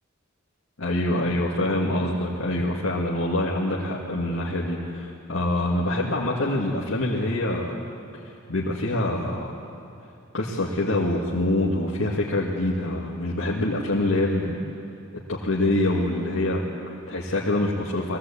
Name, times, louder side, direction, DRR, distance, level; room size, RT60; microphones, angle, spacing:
voice 1, 0.8-7.8 8.2-9.5 10.3-14.6 15.1-18.2, left 1 dB, 85° left, -4 dB, 1.9 m, -25 dB
21.0 x 16.5 x 8.5 m, 2.6 s
head